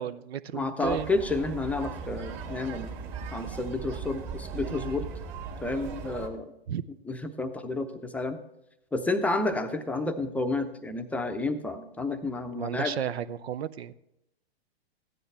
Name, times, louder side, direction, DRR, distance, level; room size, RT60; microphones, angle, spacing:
voice 1, 0.0-1.1 6.7-6.8 12.5-13.9, right 9 dB, 80° right, 14 dB, 0.6 m, -33 dB
voice 2, 0.5-3.0 3.3-5.1 5.6-6.5 7.1-8.4 8.9-13.0, left 2 dB, 5° left, 7 dB, 0.6 m, -30 dB
sound 1, 0.8-6.3, right 5 dB, 35° right, 2.0 m, -38 dB
14.5 x 9.9 x 3.4 m, 0.84 s
hypercardioid pair, 120°, 32 cm